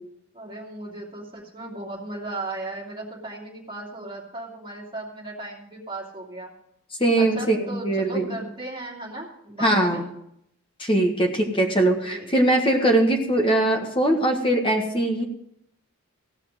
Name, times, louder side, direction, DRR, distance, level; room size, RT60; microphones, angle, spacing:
voice 1, 0.3-6.5 7.2-10.0 12.1-12.3, right 2 dB, 20° right, -3 dB, 2.7 m, -36 dB
voice 2, 7.0-8.4 9.6-10.1 10.8-15.2, right 1 dB, 25° left, 3 dB, 1.5 m, -21 dB
16.0 x 5.8 x 7.6 m, 0.75 s
head